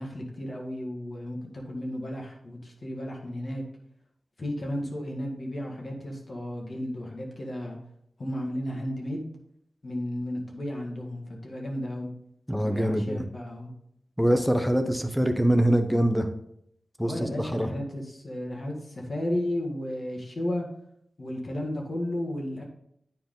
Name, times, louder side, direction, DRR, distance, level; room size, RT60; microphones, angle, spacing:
voice 1, 0.0-3.6 4.4-7.8 8.2-9.2 9.8-12.1 12.6-13.7 17.0-20.7 21.2-22.6, left 1 dB, 45° left, -1 dB, 1.8 m, -33 dB
voice 2, 12.5-13.2 14.2-16.3 17.0-17.7, right 1 dB, ahead, 7 dB, 0.7 m, -24 dB
9.7 x 4.7 x 3.8 m, 0.72 s
wide cardioid pair, 120°, 0 cm